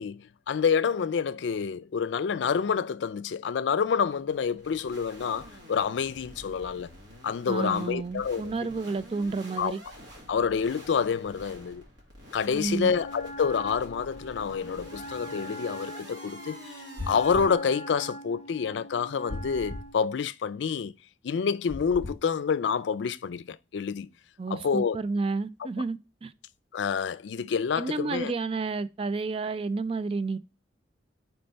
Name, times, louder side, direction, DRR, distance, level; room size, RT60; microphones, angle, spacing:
voice 1, 0.0-6.9 7.2-8.4 9.6-9.7 10.3-11.8 12.3-16.7 17.1-20.9 21.2-24.1 24.5-25.0 26.7-28.3, left 6 dB, 80° left, 0.4 m, -28 dB
sound 1, 3.8-17.5, equal, 85° right, 2.2 m, -48 dB
voice 2, 7.5-9.8 12.5-12.9 24.4-26.3 27.8-30.4, right 3 dB, 30° right, 0.3 m, -31 dB
Wind instrument woodwind instrument, 12.8-20.0, equal, 35° left, 0.7 m, -43 dB
sound 2, 17.0-17.6 19.3-19.9 21.7-22.2, left 1 dB, 70° right, 1.3 m, -37 dB
4.4 x 4.4 x 5.2 m
head